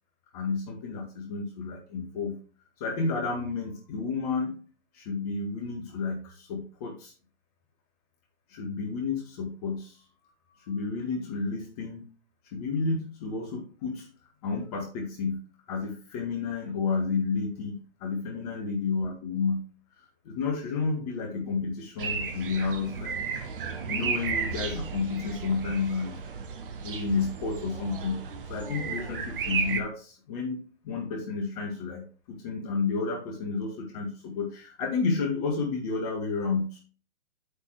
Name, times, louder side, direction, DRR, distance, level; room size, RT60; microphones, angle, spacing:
voice 1, 0.3-2.4 2.8-4.6 4.9-7.1 8.5-10.0 10.6-12.1 12.5-14.1 14.4-15.4 15.7-19.6 20.3-23.1 23.9-26.1 26.8-28.2 28.5-36.8, left 4 dB, 35° left, 1 dB, 1.9 m, -31 dB
sound 1, 22.0-29.8, right 5 dB, 50° right, 1.4 m, -33 dB
8.4 x 4.1 x 4.9 m, 0.37 s
figure-of-eight pair, 125°, 35 cm